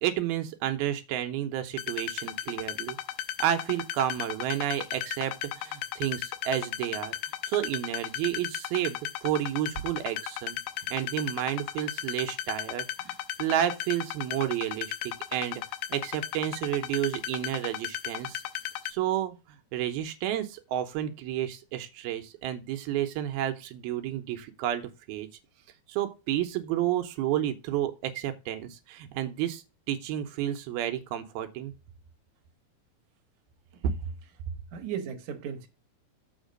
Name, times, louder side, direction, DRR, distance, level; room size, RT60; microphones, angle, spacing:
voice 1, 0.0-3.0 3.4-7.1 7.5-10.6 10.9-13.1 13.4-15.6 15.9-18.4 18.9-19.4 19.7-25.3 25.9-31.7 33.8-33.9, right 11 dB, 80° right, 2.8 m, -31 dB
sound 1, 1.8-18.9, left 12 dB, 90° left, 2.5 m, -36 dB
voice 2, 34.7-35.7, right 8 dB, 60° right, 2.3 m, -36 dB
7.4 x 4.9 x 5.1 m
omnidirectional pair, 4.4 m